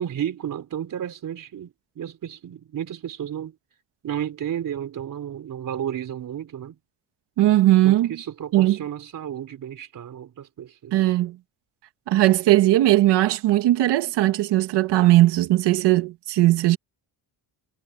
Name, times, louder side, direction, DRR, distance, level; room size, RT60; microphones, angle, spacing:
voice 1, 0.0-3.5 4.0-6.8 7.8-11.0, right 10 dB, 50° right, 4.0 m, -32 dB
voice 2, 7.4-8.1 8.5-8.8 10.9-11.4 12.1-16.8, right 15 dB, 90° right, 2.0 m, -18 dB
cardioid pair, 135°, 40 cm